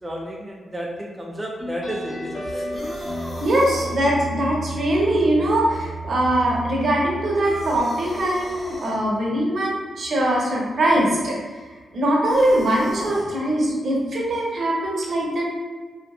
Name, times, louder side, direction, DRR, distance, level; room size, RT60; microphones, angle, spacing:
voice 1, 0.0-2.8, equal, 15° right, -2 dB, 0.4 m, -32 dB
sound 1, 1.6-8.7, right 2 dB, 65° left, 1.0 m, -33 dB
sound 2, 2.4-3.9 7.4-9.0 12.2-13.3, equal, 30° left, 1.1 m, -37 dB
voice 2, 3.4-11.4 11.9-15.4, right 1 dB, 65° right, -3 dB, 0.7 m, -21 dB
2.7 x 2.3 x 2.2 m, 1.5 s
supercardioid pair, 50°, 0 cm